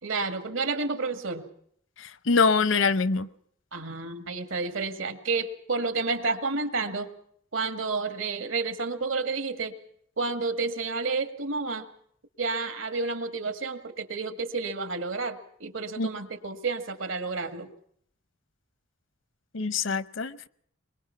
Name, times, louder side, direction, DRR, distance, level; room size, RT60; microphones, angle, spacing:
voice 1, 0.0-1.5 3.7-7.1 7.5-9.7 10.2-11.9 12.4-17.7, right 4 dB, 80° right, 2.1 m, -30 dB
voice 2, 2.3-3.3 16.0-16.1 19.5-20.5, left 4 dB, 70° left, 0.8 m, -24 dB
23.5 x 22.0 x 5.9 m
head